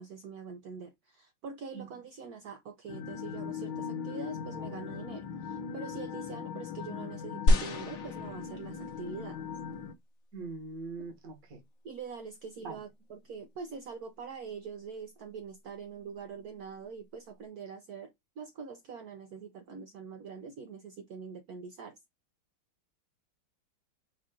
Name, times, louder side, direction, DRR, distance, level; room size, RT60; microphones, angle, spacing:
voice 1, 0.0-9.4 11.8-22.0, right 5 dB, 70° right, 0.9 m, -44 dB
sound 1, 2.9-9.9, left 7 dB, 85° left, 1.5 m, -39 dB
sound 2, 7.5-9.0 9.7-9.8, left 2 dB, 55° left, 1.1 m, -28 dB
voice 2, 10.3-11.6 12.6-12.8, right 4 dB, 45° right, 1.7 m, -42 dB
5.6 x 2.5 x 3.6 m
omnidirectional pair, 2.2 m